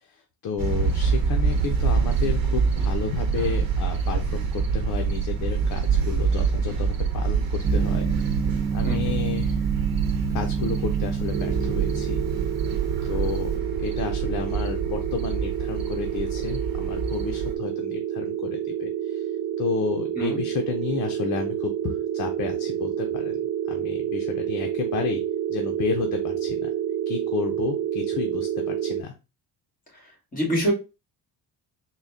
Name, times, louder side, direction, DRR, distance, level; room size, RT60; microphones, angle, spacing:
voice 1, 0.4-8.0 8.7-9.6 10.3-12.2 13.0-19.2 19.6-23.4 23.7-25.2 25.5-26.7 27.1-29.1, left 6 dB, 60° left, 4 dB, 0.7 m, -31 dB
sound 1, 0.6-17.5, right 5 dB, 65° right, 0.9 m, -26 dB
Gong, 7.6-13.5, right 6 dB, 10° right, 0.3 m, -30 dB
sound 2, 11.3-29.0, right 10 dB, 90° right, 0.6 m, -29 dB
voice 2, 30.3-30.7, right 1 dB, 20° left, -1 dB, 2.1 m, -24 dB
3.9 x 2.2 x 3.5 m, 0.29 s
cardioid pair, 120°, 37 cm